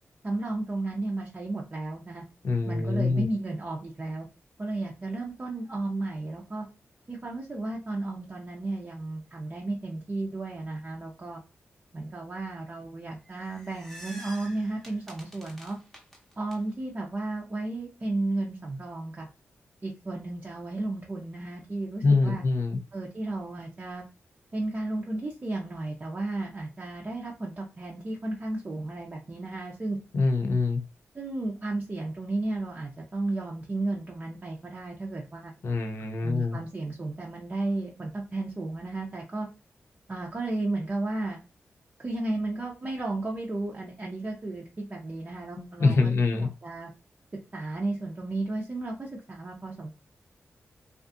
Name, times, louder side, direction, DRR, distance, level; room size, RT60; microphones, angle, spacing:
voice 1, 0.2-2.2 2.7-4.3 4.6-6.7 7.1-11.4 11.9-15.8 16.4-19.3 19.8-22.4 22.9-24.0 24.5-30.0 31.1-35.5 36.2-39.5 40.1-41.4 42.0-46.1 46.6-46.9 47.5-49.9, right 2 dB, 30° right, -2 dB, 0.6 m, -33 dB
voice 2, 2.4-3.3 22.0-22.8 30.1-30.8 35.6-36.6 45.6-46.5, left 3 dB, 70° left, 4 dB, 0.6 m, -25 dB
sound 1, 13.3-16.6, equal, 5° left, 0.8 m, -47 dB
2.5 x 2.4 x 2.5 m, 0.32 s
wide cardioid pair, 95°, 5 cm